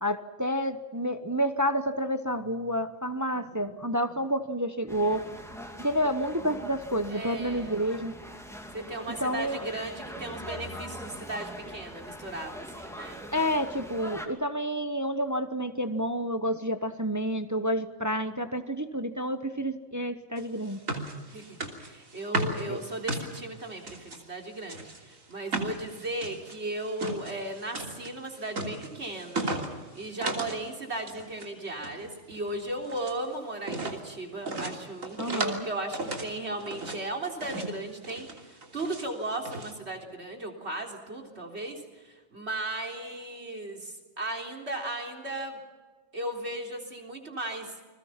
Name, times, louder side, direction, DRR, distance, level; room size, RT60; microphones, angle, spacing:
voice 1, 0.0-5.2 5.8-8.2 9.2-9.6 13.3-20.8 22.7-22.8 35.2-35.7, equal, 15° right, 9 dB, 0.9 m, -29 dB
voice 2, 3.3-3.9 7.1-7.8 8.7-13.2 21.3-45.6 46.1-47.7, right 2 dB, 50° right, 2 dB, 4.1 m, -36 dB
sound 1, 4.9-14.3, equal, ahead, 2.5 m, -42 dB
sound 2, 20.4-24.2 24.6-30.6 30.9-31.5 31.8-33.2 33.6-34.0 34.5-35.6 35.9-37.0 37.4-37.8 38.0-39.1 39.4-39.7, right 2 dB, 75° right, 3.5 m, -35 dB
29.5 x 21.5 x 5.9 m, 1.3 s
omnidirectional pair, 1.4 m